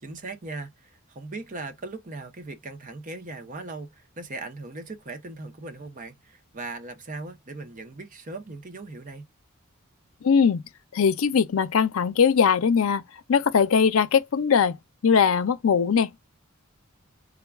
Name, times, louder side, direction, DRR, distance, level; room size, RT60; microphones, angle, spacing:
voice 1, 0.0-9.2, right 3 dB, 40° right, 0.7 m, -39 dB
voice 2, 10.2-10.6 10.9-13.0 13.3-14.8 15.0-16.1, left 6 dB, 75° left, 0.5 m, -20 dB
3.6 x 2.3 x 3.4 m
head